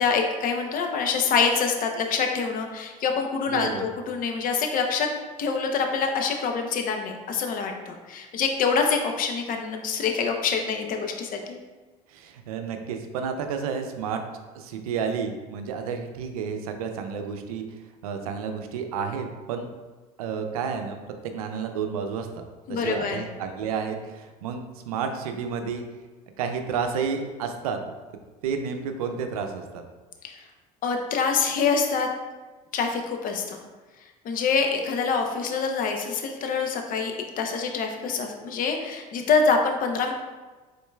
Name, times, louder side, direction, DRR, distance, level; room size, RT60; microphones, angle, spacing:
voice 1, 0.0-5.1 5.4-11.6 22.7-23.2 30.2-30.4 30.8-32.1 32.7-33.6 34.2-40.1, left 5 dB, 50° left, 4 dB, 0.8 m, -25 dB
voice 2, 3.5-3.9 12.1-14.2 14.5-17.6 18.0-19.7 20.2-21.0 21.2-22.4 22.7-25.8 26.4-27.8 28.4-29.8, right 6 dB, 90° right, 6 dB, 0.5 m, -31 dB
5.3 x 3.8 x 2.3 m, 1.3 s
supercardioid pair, 85°, 18 cm